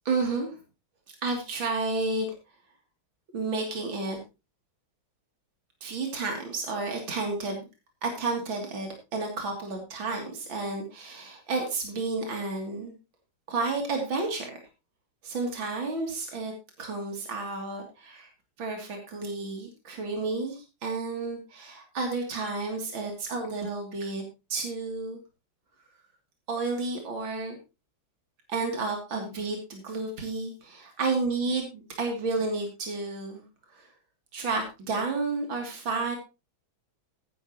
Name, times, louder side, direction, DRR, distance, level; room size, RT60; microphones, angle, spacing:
voice 1, 0.1-0.6 1.2-2.3 3.3-4.2 5.8-7.7 8.0-12.9 13.5-14.5 15.2-16.5 16.8-18.3 18.6-24.2 24.5-25.2 26.5-27.6 28.5-33.4 33.7-33.9 34.3-36.2, right 3 dB, 70° right, 2 dB, 3.7 m, -31 dB
15.0 x 11.5 x 3.0 m, 0.27 s
omnidirectional pair, 2.2 m